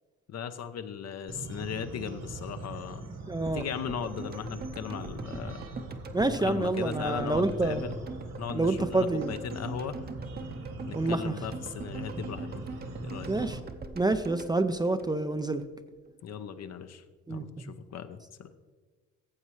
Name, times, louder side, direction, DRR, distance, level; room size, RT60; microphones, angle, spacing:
voice 1, 0.3-3.0 3.5-5.7 6.2-8.0 8.4-10.0 10.9-12.7 13.0-13.3 16.2-17.0 17.3-18.5, left 7 dB, 60° left, 10 dB, 0.7 m, -37 dB
sound 1, 1.3-13.6, right 2 dB, 60° right, 1.6 m, -42 dB
voice 2, 3.3-3.6 6.1-7.8 8.5-9.3 11.0-11.3 13.3-13.6 14.0-15.6 17.3-17.4, right 2 dB, 15° right, 10 dB, 0.4 m, -27 dB
sound 2, 3.5-15.7 15.9-16.0, right 3 dB, 30° right, 0.8 m, -42 dB
14.5 x 7.4 x 3.2 m, 1.4 s
cardioid pair, 90°, 30 cm